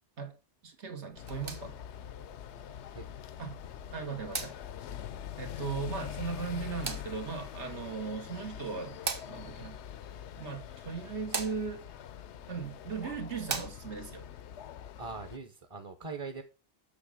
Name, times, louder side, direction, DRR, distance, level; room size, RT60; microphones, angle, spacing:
voice 1, 0.6-1.8 3.4-3.6 3.9-4.6 5.4-9.8 10.4-11.9 12.5-14.3, right 5 dB, 80° right, 1.8 m, -38 dB
sound 1, 1.1-14.2, right 4 dB, 55° right, 1.3 m, -44 dB
sound 2, 1.2-15.4, left 10 dB, 80° left, 0.9 m, -44 dB
voice 2, 15.0-16.4, right 4 dB, 30° right, 0.9 m, -41 dB
7.3 x 6.4 x 5.0 m
omnidirectional pair, 1.1 m